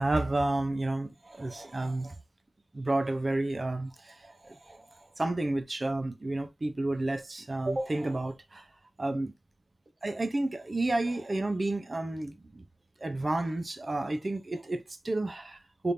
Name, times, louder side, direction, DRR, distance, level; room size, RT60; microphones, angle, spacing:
voice 1, 0.0-2.2 2.7-8.6 9.0-9.3 10.0-12.6 13.0-15.9, right 2 dB, 35° right, 0.7 m, -31 dB
3.7 x 3.4 x 2.7 m
wide cardioid pair, 100°, 0 cm